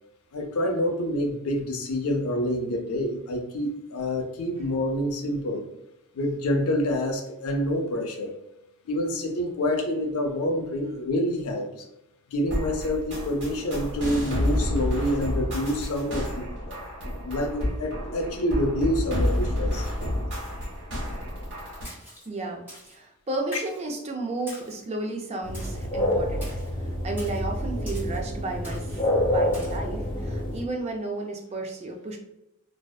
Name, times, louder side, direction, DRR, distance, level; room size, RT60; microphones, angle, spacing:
voice 1, 0.3-5.6 6.1-8.4 8.9-11.8 12.3-19.9, left 1 dB, 80° left, 3 dB, 0.5 m, -27 dB
sound 1, 12.5-21.8, left 1 dB, 55° right, 1.2 m, -29 dB
Splash splatter, 21.8-22.3 22.7-23.0 23.5-23.8 24.5-24.8 25.5-25.9 26.4-26.7 27.2-27.4 27.9-28.2 28.6-29.0 29.5-29.8, equal, 10° right, 1.0 m, -44 dB
voice 2, 22.3-28.8 29.2-32.2, right 2 dB, 30° right, 1 dB, 0.4 m, -33 dB
sound 2, 25.4-30.6, left 1 dB, 40° left, 0.9 m, -28 dB
2.6 x 2.1 x 2.3 m, 0.87 s
head